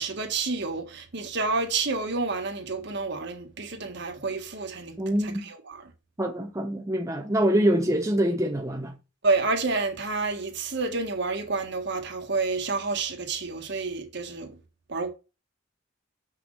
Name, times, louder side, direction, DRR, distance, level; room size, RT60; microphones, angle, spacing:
voice 1, 0.0-5.9 9.2-14.6 14.9-15.1, right 3 dB, 60° right, 1.6 m, -29 dB
voice 2, 5.0-5.4 6.2-8.9, right 1 dB, 15° right, 0.7 m, -25 dB
6.0 x 4.7 x 6.5 m
head